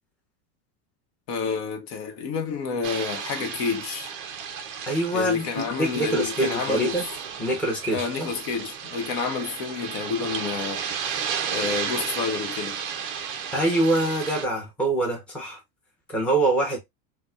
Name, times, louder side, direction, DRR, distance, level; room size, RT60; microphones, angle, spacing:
voice 1, 1.3-4.1 5.1-7.0 7.9-12.8, left 5 dB, 55° left, 0.9 m, -29 dB
sound 1, 2.8-14.4, right 7 dB, 30° right, 0.4 m, -33 dB
voice 2, 4.8-7.0 7.4-8.3 13.5-15.6 16.1-16.8, right 2 dB, 5° left, 0.7 m, -25 dB
4.0 x 2.2 x 2.2 m
supercardioid pair, 155°, 50 cm